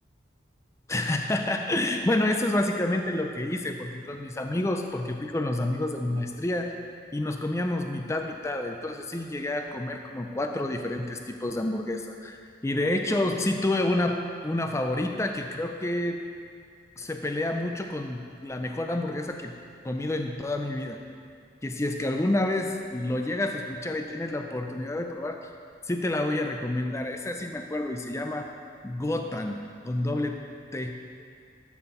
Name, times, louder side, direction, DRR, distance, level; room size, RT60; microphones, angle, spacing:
voice 1, 0.9-6.7 7.1-16.2 17.0-19.5 19.8-21.0 21.6-25.4 25.9-28.5 28.8-30.4 30.7-30.9, left 1 dB, 15° left, 4 dB, 0.4 m, -29 dB
13.0 x 4.4 x 5.4 m, 2.2 s
head